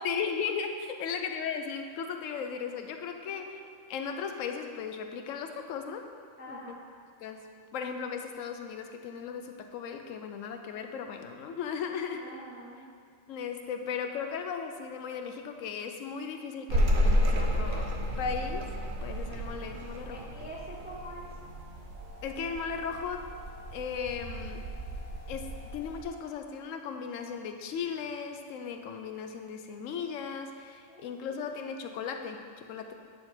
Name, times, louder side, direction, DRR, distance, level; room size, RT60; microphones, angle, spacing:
voice 1, 0.0-3.6 3.9-6.1 6.5-6.6 7.2-7.4 7.7-12.2 13.3-17.9 18.2-18.7 19.0-20.2 22.2-23.2 23.7-24.6 25.3-25.5 25.7-32.9, left 6 dB, 75° left, 5 dB, 0.9 m, -36 dB
voice 2, 6.4-6.8 12.1-12.9 20.1-21.3 30.9-31.5, right 1 dB, 10° right, -4 dB, 0.5 m, -45 dB
sound 1, 16.7-26.0, equal, 60° right, 0.9 m, -32 dB
8.8 x 3.8 x 4.4 m, 2.2 s
omnidirectional pair, 1.4 m